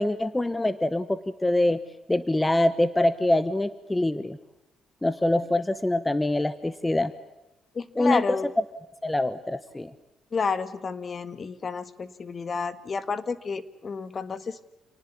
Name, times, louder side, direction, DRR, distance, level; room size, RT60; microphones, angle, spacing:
voice 1, 0.0-1.8 2.1-4.4 5.0-7.1 8.0-8.4 9.0-9.9, left 1 dB, 10° left, 15 dB, 1.1 m, -24 dB
voice 2, 7.7-8.5 10.3-14.6, left 5 dB, 40° left, 14 dB, 1.8 m, -30 dB
28.5 x 19.5 x 8.4 m, 0.97 s
cardioid pair, 90°, 0 cm